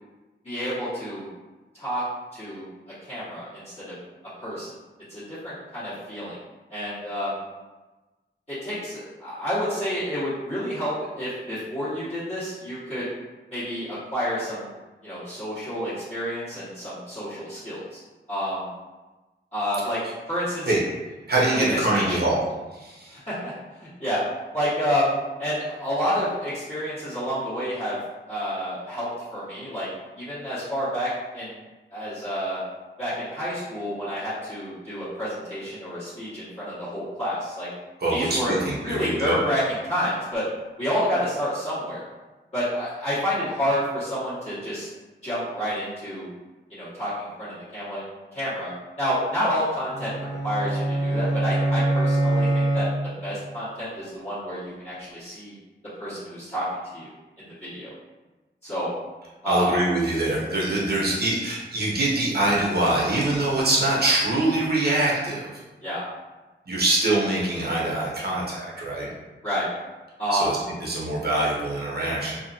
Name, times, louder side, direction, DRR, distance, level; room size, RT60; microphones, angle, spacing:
voice 1, 0.4-1.3 1.7-2.0 2.3-2.6 3.0-4.0 4.4-4.7 5.1-6.4 6.7-7.4 8.5-13.1 13.5-14.7 15.0-18.0 18.3-18.6 19.5-20.0 20.3-20.7 21.5-22.2 23.1-23.5 23.8-24.2 24.5-25.1 25.4-28.0 28.3-29.9 30.2-31.6 31.9-32.6 33.0-37.7 38.1-40.5 40.8-42.0 42.5-44.9 45.2-46.3 46.7-48.0 48.3-48.7 49.0-50.1 50.4-52.9 53.2-55.5 56.0-56.7 56.9-57.1 57.4-57.5 57.7-57.9 58.6-58.9 59.4-59.7 65.8-66.0 69.4-69.7 70.2-70.5, equal, 35° left, -14 dB, 1.3 m, -29 dB
voice 2, 21.3-22.4 22.7-23.2 38.0-39.4 59.5-65.4 66.7-69.1 70.3-72.4, right 2 dB, 55° right, -5 dB, 0.7 m, -24 dB
sound 1, 49.9-53.4, right 1 dB, 20° right, 0.7 m, -24 dB
2.8 x 2.4 x 2.6 m, 1.2 s
wide cardioid pair, 70°, 20 cm